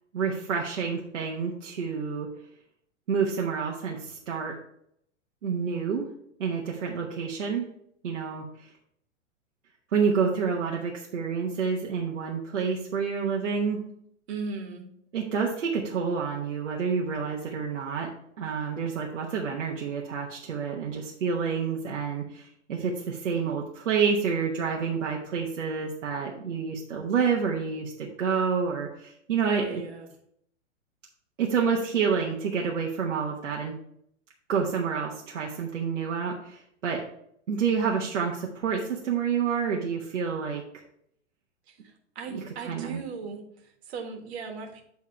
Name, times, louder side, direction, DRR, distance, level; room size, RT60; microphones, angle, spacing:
voice 1, 0.1-2.3 3.1-4.6 5.4-6.1 6.4-7.7 8.0-8.7 9.9-13.8 15.1-18.1 18.4-29.8 31.4-33.7 34.5-37.0 37.5-40.8 42.7-43.0, right 6 dB, 75° right, -2 dB, 1.2 m, -28 dB
voice 2, 14.3-14.9 29.5-30.1 41.7-44.8, right 4 dB, 60° right, 3 dB, 1.7 m, -38 dB
8.7 x 3.5 x 4.4 m, 0.70 s
hypercardioid pair, 110°, 37 cm